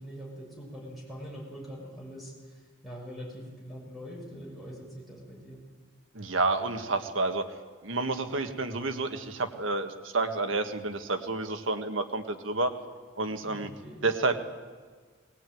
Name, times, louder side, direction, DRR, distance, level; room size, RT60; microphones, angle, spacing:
voice 1, 0.0-5.6 13.5-14.0, equal, ahead, -3 dB, 6.8 m, -43 dB
voice 2, 6.1-7.5 7.8-12.7 13.2-13.7 14.0-14.4, right 3 dB, 85° right, 8 dB, 1.7 m, -29 dB
19.5 x 19.0 x 9.4 m, 1.5 s
head